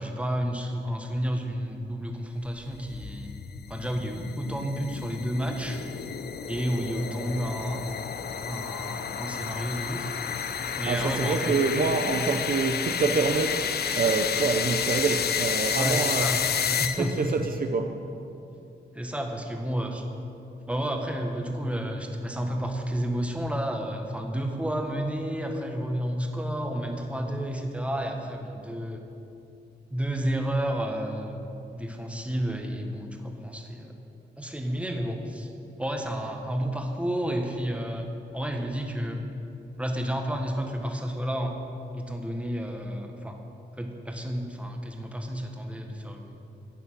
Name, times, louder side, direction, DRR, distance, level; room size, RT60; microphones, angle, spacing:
voice 1, 0.0-3.3 3.7-5.8 6.5-7.8 8.5-10.1 10.8-11.6 15.8-16.4 16.8-17.4 18.9-20.0 20.7-29.0 29.9-31.4 31.7-34.0 34.4-35.5 35.8-39.2 39.8-41.6 41.9-43.4 43.8-46.4, equal, 5° right, 3 dB, 1.3 m, -31 dB
sound 1, 2.5-17.3, left 7 dB, 55° left, 0.6 m, -31 dB
voice 2, 10.8-16.3 17.2-18.0, right 4 dB, 50° right, 5 dB, 0.7 m, -26 dB
9.9 x 5.6 x 8.1 m, 2.7 s
cardioid pair, 65°, 19 cm